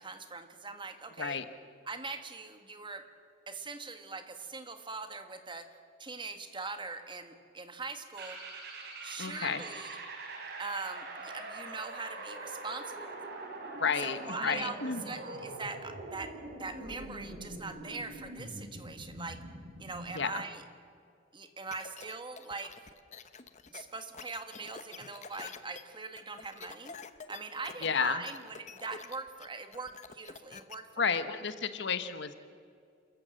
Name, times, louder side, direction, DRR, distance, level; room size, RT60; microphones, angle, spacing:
voice 1, 0.0-1.4 1.9-3.0 3.5-5.7 6.0-8.4 9.0-10.0 10.6-13.2 14.0-14.8 15.0-19.4 19.8-20.6 21.3-22.7 23.7-27.0 27.3-31.2, right 4 dB, 25° right, 7 dB, 1.5 m, -42 dB
sound 1, 8.2-20.2, right 2 dB, 60° right, 3.7 m, -43 dB
voice 2, 9.2-9.6 13.8-15.0 20.1-20.4 27.8-28.2 31.0-32.4, left 6 dB, 65° left, 11 dB, 1.1 m, -31 dB
sound 2, 21.7-30.8, left 5 dB, 40° left, 0.9 m, -48 dB
28.0 x 14.0 x 7.7 m, 2.2 s
head